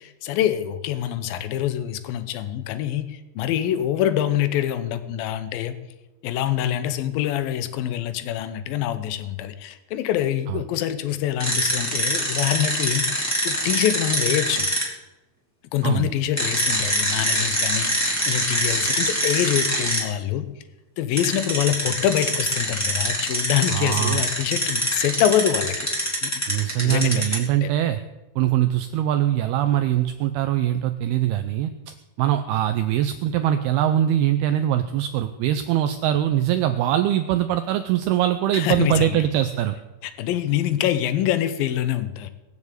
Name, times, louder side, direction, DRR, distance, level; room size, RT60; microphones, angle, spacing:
voice 1, 0.0-5.8 6.2-14.7 15.7-20.5 21.0-25.9 26.2-26.3 26.8-27.2 27.6-27.7 38.5-39.2 40.2-42.3, left 11 dB, 80° left, 11 dB, 2.1 m, -25 dB
sound 1, 11.4-14.8 16.4-20.0 21.2-27.4, equal, 5° left, 3.3 m, -24 dB
voice 2, 15.8-16.1 23.7-24.2 26.5-28.0 28.4-39.7, right 12 dB, 90° right, 9 dB, 2.2 m, -22 dB
21.5 x 7.3 x 8.2 m, 1.0 s
omnidirectional pair, 5.3 m